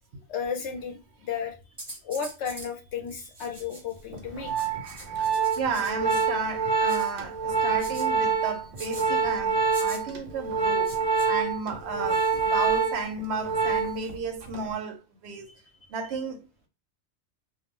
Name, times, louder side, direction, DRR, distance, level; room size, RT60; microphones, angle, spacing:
voice 1, 0.3-1.6 2.0-4.7, left 7 dB, 90° left, 1.0 m, -33 dB
sound 1, 1.8-2.7 3.1-4.0 4.5-6.3 6.9-7.1 7.8-8.1 8.7-9.0 9.7-10.0 10.8-11.3 12.0-12.9 13.6-14.1, right 1 dB, 25° right, 1.1 m, -44 dB
Organ, 4.1-14.1 14.4-14.7, right 5 dB, 50° right, 0.5 m, -26 dB
voice 2, 4.7-11.0 11.2-15.5 15.9-16.5, right 4 dB, 75° right, 0.8 m, -33 dB
2.4 x 2.1 x 2.9 m
omnidirectional pair, 1.2 m